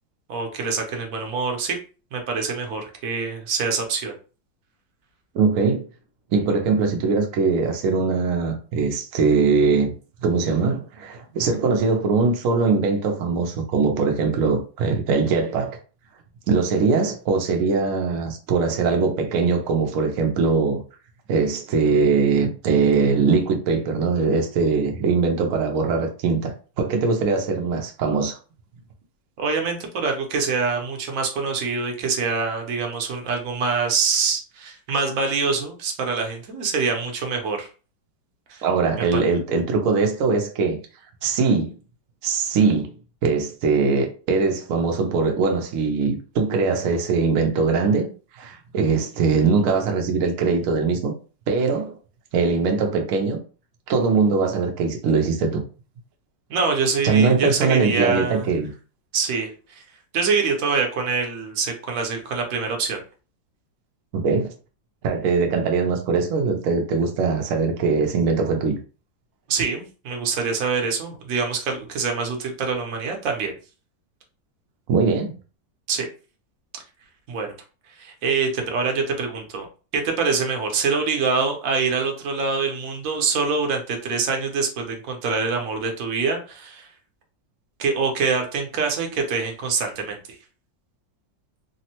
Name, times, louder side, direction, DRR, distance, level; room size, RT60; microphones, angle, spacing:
voice 1, 0.3-1.8 2.1-4.1 29.4-37.7 38.5-38.6 39.1-39.2 56.5-58.5 59.1-59.8 60.1-63.0 69.5-73.5 75.9-76.1 77.3-77.5 78.0-79.7 79.9-86.9 87.8-90.2, right 5 dB, 65° right, 0.9 m, -25 dB
voice 2, 5.3-5.8 6.3-10.0 10.2-15.8 16.5-20.8 21.3-28.4 38.6-40.8 41.2-41.8 42.2-42.9 43.2-51.1 51.5-52.0 52.3-53.4 53.9-55.6 57.0-58.7 64.1-64.5 65.0-68.8 74.9-75.3, right 4 dB, 90° right, 0.7 m, -21 dB
3.4 x 2.0 x 2.8 m
omnidirectional pair, 2.0 m